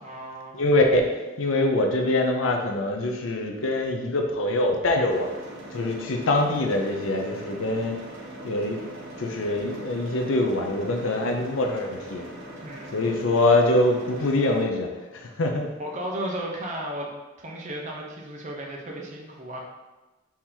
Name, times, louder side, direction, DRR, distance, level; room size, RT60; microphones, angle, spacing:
voice 1, 0.0-0.6 12.6-13.2 15.8-17.1 17.4-19.7, right 1 dB, 40° right, -1 dB, 0.7 m, -34 dB
voice 2, 0.5-5.3 5.7-8.0 8.4-8.8 9.2-12.2 12.9-14.9 15.1-15.7, left 2 dB, 85° left, 3 dB, 0.6 m, -24 dB
sound 1, 5.1-14.6, right 1 dB, 75° right, 1.0 m, -41 dB
4.4 x 2.8 x 3.8 m, 1.1 s
head